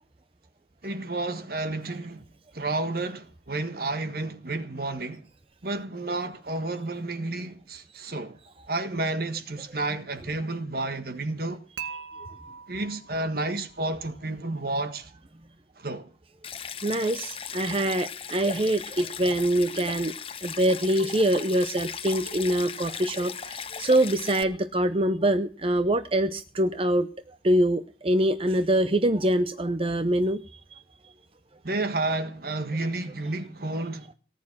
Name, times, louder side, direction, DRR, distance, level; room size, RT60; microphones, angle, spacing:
voice 1, 0.8-2.2 2.5-5.2 5.6-8.4 8.7-11.6 12.7-15.1 15.8-16.1 31.6-34.1, right 2 dB, 55° right, 1.6 m, -31 dB
Dishes pots and pans / Chink clink, 11.8-13.9, right 7 dB, 70° right, 1.7 m, -41 dB
Stream, 16.4-24.4, left 7 dB, 30° left, 0.9 m, -38 dB
voice 2, 16.8-20.1 20.4-27.1 27.4-30.8, right 1 dB, 30° right, 0.7 m, -24 dB
18.5 x 9.7 x 6.1 m
head